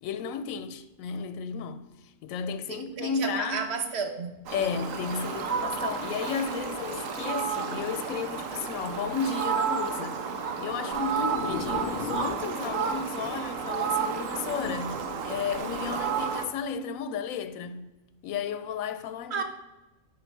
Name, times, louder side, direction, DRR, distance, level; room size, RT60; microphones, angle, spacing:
voice 1, 0.0-3.6 4.5-17.9 18.2-19.4, left 6 dB, 90° left, 1.0 m, -33 dB
voice 2, 2.7-4.3 19.3-19.4, right 5 dB, 55° right, 1.2 m, -32 dB
Fowl, 4.5-16.4, right 6 dB, 80° right, 1.2 m, -31 dB
sound 1, 10.9-12.4 12.9-13.0 13.2-13.3 14.4-15.3 16.0-16.2, left 5 dB, 55° left, 0.6 m, -38 dB
9.7 x 5.1 x 4.5 m
omnidirectional pair, 1.4 m